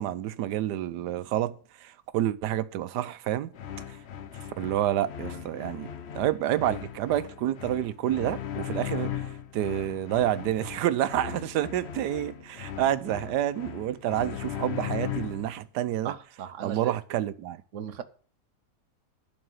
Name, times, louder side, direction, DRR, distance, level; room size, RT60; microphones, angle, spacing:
voice 1, 0.0-3.5 4.6-5.9 6.1-9.1 9.5-16.1 16.6-17.6, right 12 dB, 85° right, 1.3 m, -28 dB
sound 1, 3.5-15.6, left 9 dB, 55° left, 0.8 m, -38 dB
voice 2, 16.0-17.0 17.7-18.0, right 9 dB, 55° right, 1.0 m, -37 dB
11.0 x 4.6 x 7.9 m
omnidirectional pair, 1.7 m